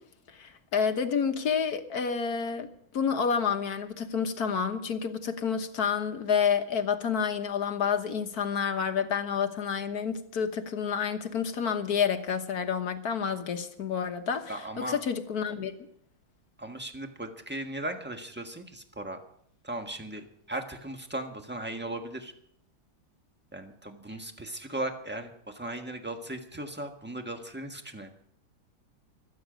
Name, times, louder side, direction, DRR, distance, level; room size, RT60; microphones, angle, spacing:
voice 1, 0.4-2.7 2.9-15.7, left 6 dB, 55° left, 8 dB, 1.5 m, -29 dB
voice 2, 14.5-15.0 16.6-19.2 19.6-22.3 23.5-28.1, right 1 dB, 5° right, 5 dB, 1.2 m, -37 dB
25.0 x 9.4 x 5.2 m, 0.70 s
omnidirectional pair, 2.2 m